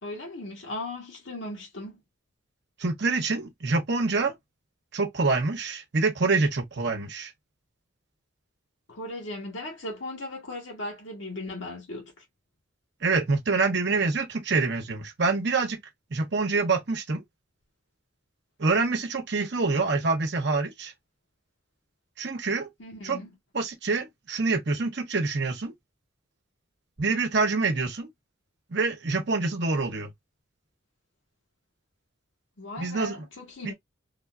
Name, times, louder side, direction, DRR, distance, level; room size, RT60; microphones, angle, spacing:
voice 1, 0.0-2.0 8.9-12.2 22.8-23.3 32.6-33.7, left 2 dB, 70° left, 1.2 m, -37 dB
voice 2, 2.8-4.3 4.9-7.3 13.0-15.8 16.1-17.2 18.6-20.9 22.2-22.7 23.0-23.2 23.5-25.7 27.0-28.1 28.7-30.1 32.8-33.2 33.6-33.7, right 3 dB, 55° right, 0.9 m, -26 dB
3.6 x 2.4 x 2.4 m
head